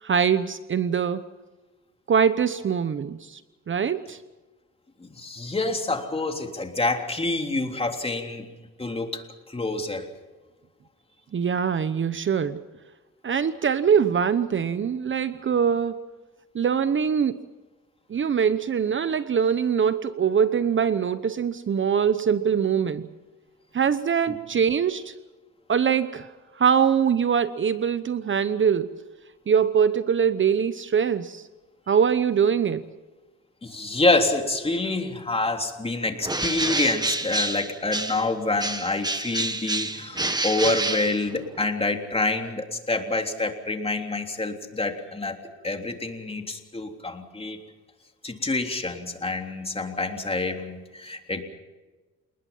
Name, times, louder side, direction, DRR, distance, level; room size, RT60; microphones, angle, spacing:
voice 1, 0.0-1.3 2.1-3.4 3.7-4.2 11.3-12.6 13.2-16.1 16.5-17.4 18.1-23.1 23.7-25.1 25.7-29.0 29.5-31.5 31.9-32.8, right 7 dB, 40° right, 13 dB, 0.9 m, -23 dB
voice 2, 5.0-8.5 8.8-10.1 33.6-45.4 45.6-47.6 48.2-51.4, left 2 dB, 20° left, 4 dB, 3.4 m, -27 dB
Bird, 36.2-38.3 38.6-41.7, right 2 dB, 15° right, 1.7 m, -28 dB
29.0 x 20.0 x 5.6 m, 1.2 s
cardioid pair, 90°, 30 cm